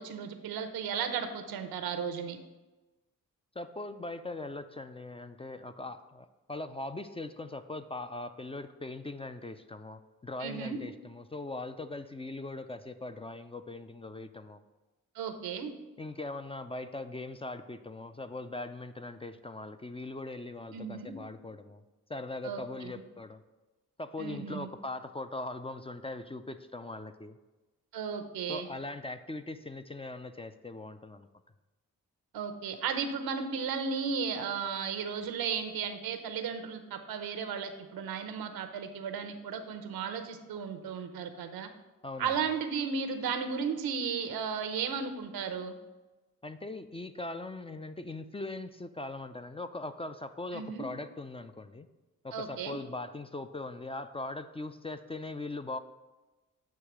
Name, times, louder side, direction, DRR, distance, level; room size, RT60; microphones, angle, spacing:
voice 1, 0.0-2.4 10.4-10.8 15.1-15.7 20.7-21.1 22.4-22.9 24.2-24.7 27.9-28.7 32.3-41.7 42.2-45.7 50.5-50.8 52.3-52.8, right 6 dB, 85° right, 7 dB, 0.8 m, -35 dB
voice 2, 3.6-14.6 16.0-21.8 22.1-23.4 24.0-27.4 28.5-31.3 42.0-42.3 46.4-51.9 52.2-55.8, left 2 dB, 15° left, 9 dB, 0.4 m, -40 dB
8.1 x 2.8 x 6.0 m, 1.1 s
cardioid pair, 55°, 35 cm